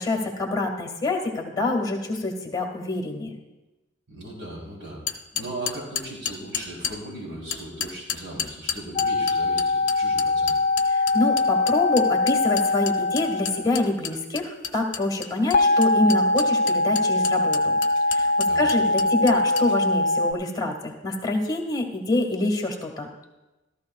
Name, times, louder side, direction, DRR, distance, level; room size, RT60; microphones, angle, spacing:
voice 1, 0.0-3.3 10.9-17.7 18.1-23.1, left 2 dB, 20° left, 1 dB, 1.7 m, -26 dB
voice 2, 4.1-10.5 18.5-18.7, right 1 dB, 60° right, -3 dB, 3.5 m, -38 dB
sound 1, 5.1-7.0 7.5-19.7, left 9 dB, 60° left, 0.8 m, -31 dB
sound 2, 9.0-13.8 15.5-20.3, left 2 dB, 45° left, 0.4 m, -22 dB
14.5 x 14.0 x 2.4 m, 1.1 s
head